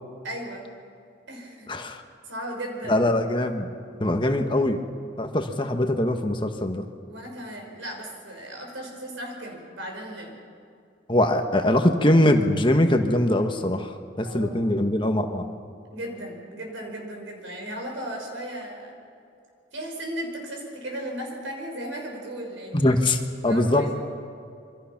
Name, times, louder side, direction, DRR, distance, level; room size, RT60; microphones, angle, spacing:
voice 1, 0.2-0.7 1.3-1.7 2.2-3.0 7.1-10.4 14.2-14.6 15.9-19.0 19.7-23.0 23.4-23.9, right 1 dB, 90° right, 2 dB, 5.6 m, -36 dB
voice 2, 1.7-2.0 2.9-3.7 4.0-4.8 5.2-6.8 11.1-15.5 22.7-23.9, left 1 dB, 25° left, 5 dB, 1.3 m, -22 dB
27.0 x 24.0 x 5.9 m, 2.4 s
head